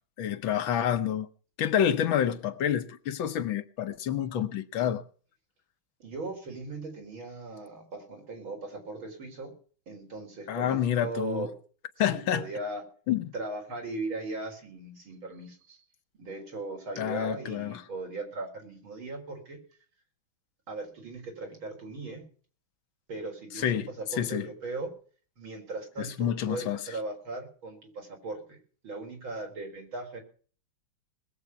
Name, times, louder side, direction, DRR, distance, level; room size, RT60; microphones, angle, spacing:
voice 1, 0.2-1.3 1.6-5.0 10.5-11.5 12.0-12.4 13.1-13.3 17.0-17.8 23.6-23.9 24.2-24.5 26.0-26.8, left 9 dB, 75° left, 1.7 m, -28 dB
voice 2, 6.0-9.5 9.9-11.5 12.1-12.8 13.3-15.8 16.2-19.6 20.7-22.3 23.1-24.9 25.4-28.6 28.8-30.2, right 2 dB, 80° right, 5.0 m, -38 dB
20.5 x 8.0 x 5.8 m
omnidirectional pair, 2.2 m